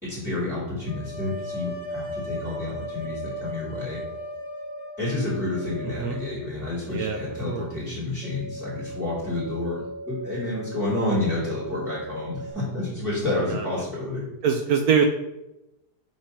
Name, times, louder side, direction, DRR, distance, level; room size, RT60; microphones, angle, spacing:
voice 1, 0.0-4.0 5.0-14.2, left 2 dB, ahead, -8 dB, 2.2 m, -29 dB
sound 1, 0.8-6.7, left 1 dB, 40° right, 0.7 m, -37 dB
sound 2, 2.7-3.4 4.0-4.8 5.6-6.2 6.9-7.6 8.2-12.5, right 1 dB, 60° left, 1.5 m, -39 dB
voice 2, 14.4-15.0, right 7 dB, 70° right, 5 dB, 1.0 m, -23 dB
5.3 x 3.6 x 5.4 m, 0.92 s
omnidirectional pair, 1.7 m